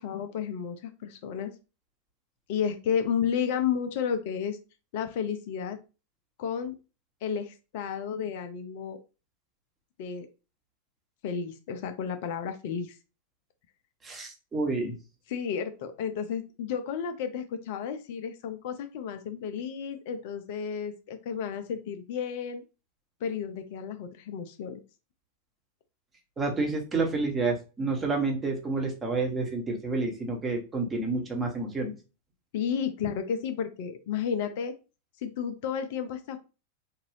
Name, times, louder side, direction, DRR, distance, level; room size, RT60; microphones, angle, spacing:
voice 1, 0.0-1.5 2.5-4.6 4.9-5.8 6.4-6.7 7.2-9.0 10.0-10.3 11.2-13.0 15.3-22.6 23.2-24.8 32.5-34.7 35.2-36.4, left 7 dB, 50° left, 8 dB, 0.5 m, -32 dB
voice 2, 14.0-14.9 26.4-31.9, right 3 dB, 20° right, 1 dB, 1.1 m, -29 dB
3.7 x 2.5 x 3.2 m, 0.31 s
figure-of-eight pair, 90°, 0 cm